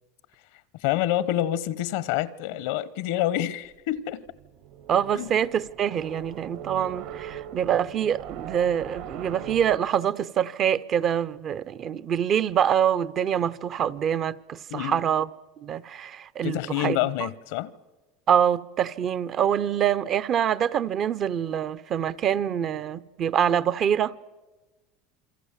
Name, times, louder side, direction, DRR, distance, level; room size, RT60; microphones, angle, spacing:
voice 1, 0.8-4.2 5.1-5.3 14.7-15.0 16.4-17.7, left 13 dB, 75° left, 1.0 m, -27 dB
sound 1, 4.2-9.8, right 9 dB, 70° right, 3.1 m, -41 dB
voice 2, 4.9-15.3 15.6-17.3 18.3-24.1, right 9 dB, 40° right, 0.7 m, -25 dB
28.0 x 23.0 x 7.4 m
supercardioid pair, 110°, 0 cm